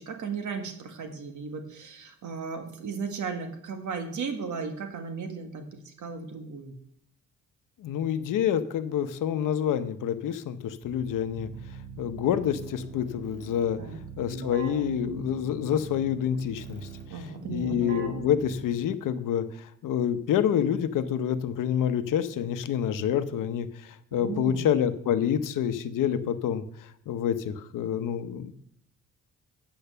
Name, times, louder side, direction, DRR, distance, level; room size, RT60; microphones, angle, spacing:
voice 1, 0.0-6.7 13.8-14.0 17.1-17.8 24.1-24.7, right 5 dB, 70° right, 6 dB, 1.6 m, -36 dB
voice 2, 7.8-11.5 12.0-13.8 14.2-16.8 17.1-28.5, left 9 dB, 80° left, 11 dB, 0.8 m, -28 dB
Keyboard (musical), 10.8-19.1, right 3 dB, 35° right, 2.0 m, -40 dB
8.8 x 5.6 x 6.7 m, 0.70 s
cardioid pair, 105°, 31 cm